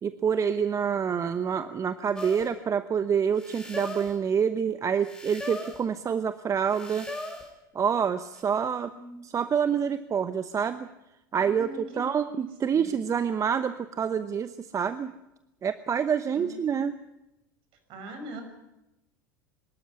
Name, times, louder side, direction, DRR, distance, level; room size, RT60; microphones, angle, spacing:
voice 1, 0.0-7.1 7.7-8.9 9.2-10.9 11.3-15.1 15.6-17.0, right 7 dB, 30° right, 12 dB, 0.9 m, -27 dB
sound 1, 2.2-2.5 3.4-4.2 5.0-5.9 6.7-7.5 8.4-8.5, left 1 dB, 5° left, 5.1 m, -39 dB
voice 2, 8.9-9.2 11.3-11.8 12.3-12.9 16.3-16.5 17.9-18.4, right 2 dB, 55° right, 6 dB, 6.2 m, -42 dB
24.0 x 13.0 x 9.9 m, 0.92 s
hypercardioid pair, 80°, 11 cm